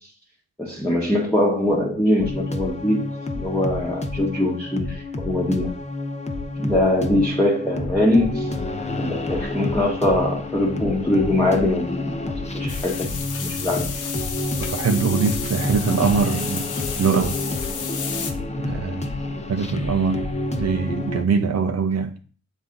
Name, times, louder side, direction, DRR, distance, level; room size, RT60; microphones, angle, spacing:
voice 1, 0.6-3.1 3.4-5.7 6.6-8.5 9.0-13.9, left 1 dB, 5° left, 1.3 m, -22 dB
sound 1, 2.2-21.2, left 2 dB, 20° left, 0.9 m, -29 dB
sound 2, 12.7-18.3, left 6 dB, 70° left, 1.0 m, -32 dB
voice 2, 14.7-16.7 17.0-17.6 18.6-19.1 19.5-20.3 20.5-22.2, right 5 dB, 50° right, 0.8 m, -23 dB
7.3 x 4.1 x 3.8 m
cardioid pair, 80°, 32 cm